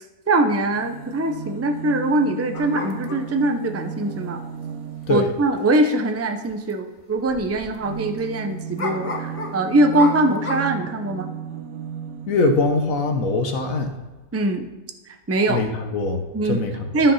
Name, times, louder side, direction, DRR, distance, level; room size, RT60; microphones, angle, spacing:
voice 1, 0.3-4.4 5.1-11.3 14.3-14.7 15.3-15.6 16.3-16.6 16.9-17.1, right 1 dB, 25° right, 6 dB, 0.3 m, -22 dB
sound 1, 0.6-5.5 7.2-12.6 13.6-13.7 13.9-14.0, right 8 dB, 75° right, 1.1 m, -35 dB
sound 2, 2.5-3.4 5.3-5.4 5.7-5.8 6.5-6.7 7.0-7.1 8.8-10.7, left 3 dB, 30° left, 0.7 m, -31 dB
voice 2, 12.3-13.9 15.5-16.9, left 3 dB, 70° left, 5 dB, 1.3 m, -22 dB
13.0 x 5.5 x 5.6 m, 1.2 s
omnidirectional pair, 1.5 m